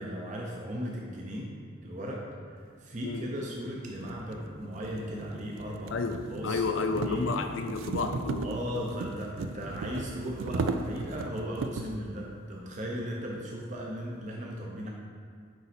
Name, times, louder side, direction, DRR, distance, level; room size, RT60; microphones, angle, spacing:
voice 1, 0.0-1.5 1.8-2.2 2.5-6.0 6.3-7.3 8.4-14.9, equal, 35° right, -2 dB, 0.7 m, -37 dB
sound 1, 3.2-3.3 4.0-12.0, right 3 dB, 80° right, 0.4 m, -36 dB
sound 2, 3.3-10.3, equal, 55° right, 1.1 m, -49 dB
voice 2, 5.9-8.5, left 4 dB, 70° left, 7 dB, 0.5 m, -31 dB
9.3 x 4.0 x 4.3 m, 2.2 s
head